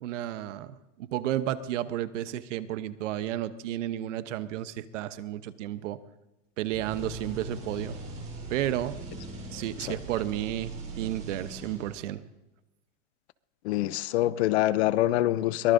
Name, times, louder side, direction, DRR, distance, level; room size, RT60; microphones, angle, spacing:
voice 1, 0.0-6.0 6.6-8.0 8.5-9.0 9.5-12.2, right 12 dB, 70° right, 13 dB, 0.9 m, -32 dB
sound 1, 6.7-12.2, right 2 dB, 20° right, 3.7 m, -40 dB
voice 2, 13.6-15.7, left 15 dB, 60° left, 17 dB, 0.6 m, -25 dB
23.0 x 18.5 x 2.6 m, 0.95 s
supercardioid pair, 170°, 38 cm